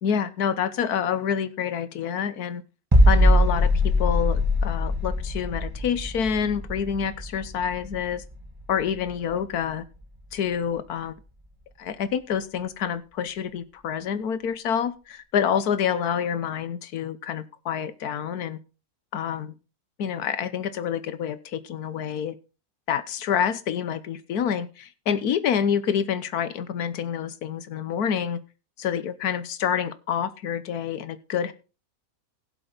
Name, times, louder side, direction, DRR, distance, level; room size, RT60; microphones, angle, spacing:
voice 1, 0.0-2.6 3.1-3.7 4.0-8.2 8.7-9.8 10.3-11.2 11.8-18.6 19.1-19.5 20.0-22.3 22.9-28.4 28.8-31.5, left 8 dB, 70° left, 14 dB, 1.4 m, -27 dB
sound 1, 2.9-8.6 8.9-9.1, left 1 dB, 15° right, 1.5 m, -22 dB
16.0 x 7.9 x 4.0 m, 0.33 s
omnidirectional pair, 1.7 m